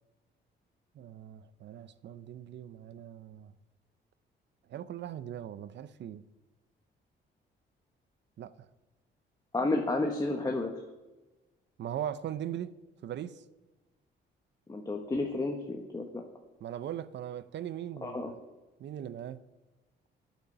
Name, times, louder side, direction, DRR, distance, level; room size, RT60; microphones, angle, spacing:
voice 1, 0.9-3.5 4.7-6.3 8.4-8.5 11.8-12.8 13.0-13.4 16.6-18.3 18.8-19.4, right 10 dB, 65° right, 0.7 m, -39 dB
voice 2, 9.5-10.8 14.7-16.2 18.0-18.3, left 2 dB, 20° left, 1.3 m, -31 dB
8.9 x 8.2 x 8.2 m
cardioid pair, 90°, 20 cm